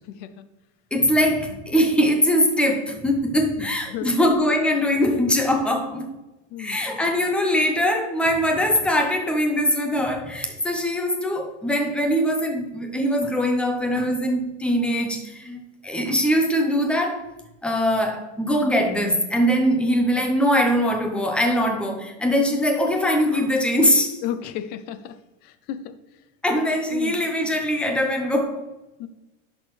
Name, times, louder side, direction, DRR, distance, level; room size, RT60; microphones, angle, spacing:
voice 1, 0.1-0.4 3.6-4.3 6.5-6.8 24.2-25.2 25.4-26.0 26.9-27.2 29.0-29.1, left 10 dB, 30° left, 12 dB, 0.4 m, -33 dB
voice 2, 0.9-6.1 6.6-17.3 17.6-24.2 26.4-28.6, equal, 5° left, 4 dB, 0.7 m, -22 dB
10.5 x 6.4 x 3.2 m, 1.0 s
supercardioid pair, 155°, 37 cm